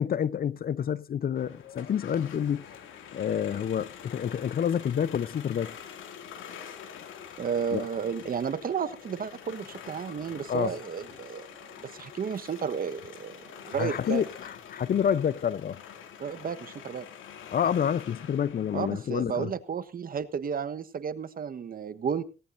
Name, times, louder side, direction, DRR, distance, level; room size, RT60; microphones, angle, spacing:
voice 1, 0.0-2.8 3.1-5.8 7.7-7.9 10.5-10.7 13.7-15.8 17.5-19.5, left 8 dB, 50° left, 0.8 m, -28 dB
sound 1, 1.4-18.9, left 8 dB, 80° left, 2.5 m, -46 dB
voice 2, 7.4-11.5 11.8-14.2 16.2-17.1 18.7-22.2, right 7 dB, 45° right, 1.2 m, -32 dB
18.0 x 17.5 x 2.6 m
cardioid pair, 90°, 20 cm